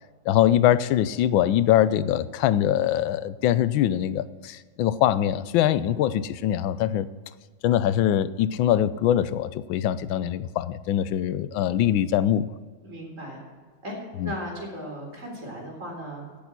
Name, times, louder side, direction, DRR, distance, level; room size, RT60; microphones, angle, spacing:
voice 1, 0.3-7.1 7.6-12.5 14.2-14.3, left 11 dB, 90° left, 16 dB, 1.4 m, -23 dB
voice 2, 12.8-13.4 13.8-14.0 14.2-16.4, equal, 40° right, 0 dB, 4.1 m, -36 dB
17.0 x 7.1 x 6.0 m, 1.5 s
omnidirectional pair, 2.1 m